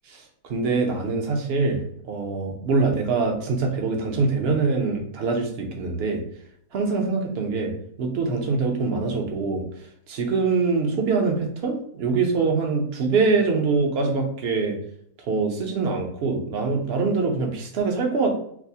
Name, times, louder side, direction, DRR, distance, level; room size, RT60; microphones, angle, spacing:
voice 1, 0.1-6.2 6.7-7.7 8.0-9.6 10.1-14.8 15.3-18.3, right 4 dB, 60° right, 3 dB, 0.6 m, -24 dB
4.5 x 2.0 x 2.7 m, 0.67 s
omnidirectional pair, 1.7 m